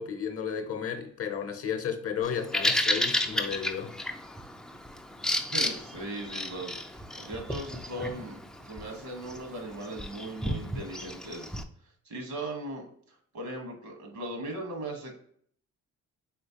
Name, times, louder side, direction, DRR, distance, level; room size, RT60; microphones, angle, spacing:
voice 1, 0.0-3.9, left 7 dB, 50° left, 0.7 m, -33 dB
Bird vocalization bird call bird song, 2.2-11.6, left 1 dB, ahead, 0.3 m, -33 dB
voice 2, 5.3-11.5 12.0-15.2, right 1 dB, 70° right, 1.3 m, -39 dB
4.3 x 3.1 x 2.8 m
cardioid pair, 90°, 30 cm